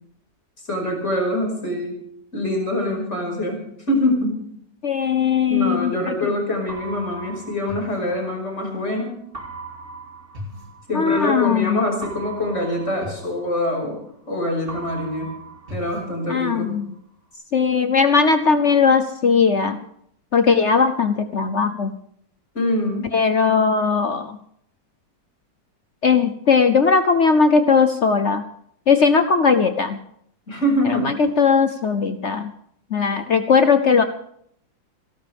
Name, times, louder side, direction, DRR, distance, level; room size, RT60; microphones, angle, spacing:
voice 1, 0.7-2.0 2.3-4.5 5.5-9.1 10.9-14.0 14.3-15.3 15.7-16.7 22.5-23.1 30.5-31.2, left 1 dB, 40° left, 1 dB, 5.7 m, -24 dB
voice 2, 4.8-6.1 10.9-11.8 16.3-16.9 17.5-19.8 20.3-21.9 23.1-24.4 26.0-28.4 28.9-30.0 30.9-32.5 32.9-34.0, left 5 dB, 60° left, 9 dB, 0.8 m, -18 dB
sound 1, 6.7-8.8 9.3-11.4 12.0-14.3 14.7-16.8, right 2 dB, 30° right, 2.8 m, -38 dB
29.0 x 12.5 x 3.5 m, 0.69 s
omnidirectional pair, 2.0 m